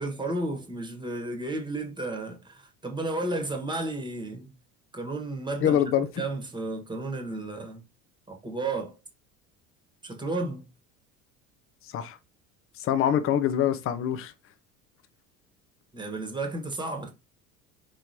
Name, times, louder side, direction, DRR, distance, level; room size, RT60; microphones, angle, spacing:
voice 1, 0.0-4.5 4.9-5.8 6.2-7.8 8.3-9.0 10.0-10.7 15.9-17.1, right 2 dB, 10° right, 1.3 m, -32 dB
voice 2, 5.6-6.1 11.9-12.2 12.8-14.3, left 10 dB, 30° left, 0.6 m, -24 dB
4.5 x 3.1 x 2.8 m
figure-of-eight pair, 65°, 42 cm